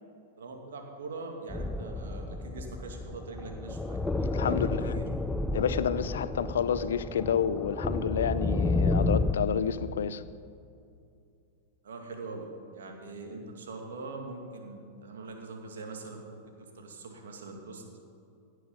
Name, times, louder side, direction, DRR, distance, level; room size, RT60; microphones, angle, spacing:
voice 1, 0.4-5.1 11.8-12.4 12.7-16.4 16.7-17.8, right 3 dB, 75° right, 2 dB, 2.2 m, -42 dB
sound 1, 1.5-9.3, left 2 dB, 10° left, 0.7 m, -31 dB
voice 2, 4.3-5.0 5.5-10.2, left 8 dB, 75° left, 15 dB, 0.5 m, -29 dB
17.0 x 9.3 x 5.3 m, 2.6 s
hypercardioid pair, 100°, 0 cm